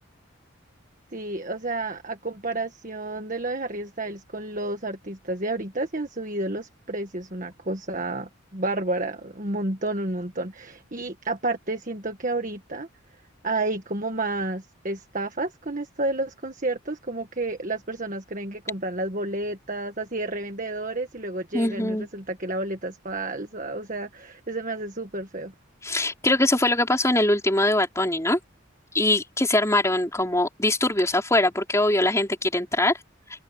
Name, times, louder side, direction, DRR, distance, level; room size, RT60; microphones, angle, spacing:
voice 1, 1.1-12.9 13.4-25.5, right 2 dB, 40° right, 1.6 m, -30 dB
voice 2, 21.5-22.1 25.8-28.4 28.9-32.9, left 1 dB, 15° left, 4.4 m, -22 dB
open air
head